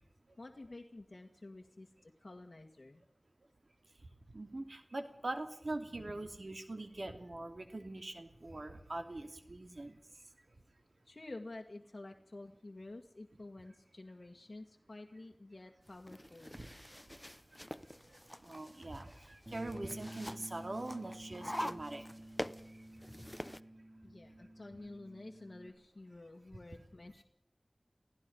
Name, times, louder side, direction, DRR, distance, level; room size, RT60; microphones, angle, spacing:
voice 1, 0.4-3.0 11.1-16.6 24.0-27.2, left 2 dB, 60° left, 1 dB, 1.8 m, -50 dB
voice 2, 4.3-10.0 16.6-16.7 18.4-22.1, right 2 dB, 70° right, 7 dB, 2.7 m, -43 dB
sound 1, 15.9-23.6, equal, 10° left, 0.8 m, -46 dB
Bass guitar, 19.5-25.7, right 1 dB, 30° right, 5.6 m, -51 dB
29.5 x 17.0 x 5.5 m, 0.75 s
wide cardioid pair, 50°, 0 cm